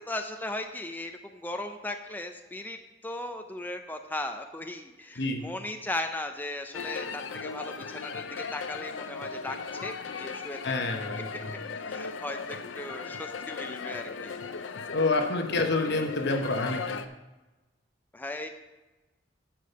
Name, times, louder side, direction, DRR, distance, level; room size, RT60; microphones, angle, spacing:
voice 1, 0.1-2.8 3.0-9.6 9.8-10.6 11.9-14.3 18.1-18.5, left 2 dB, 10° left, 5 dB, 0.6 m, -37 dB
voice 2, 5.2-5.5 10.6-11.5 14.9-16.8, left 2 dB, 65° left, 5 dB, 1.1 m, -28 dB
sound 1, 6.7-17.1, left 5 dB, 80° left, 0.6 m, -37 dB
10.5 x 5.2 x 6.7 m, 1.1 s
head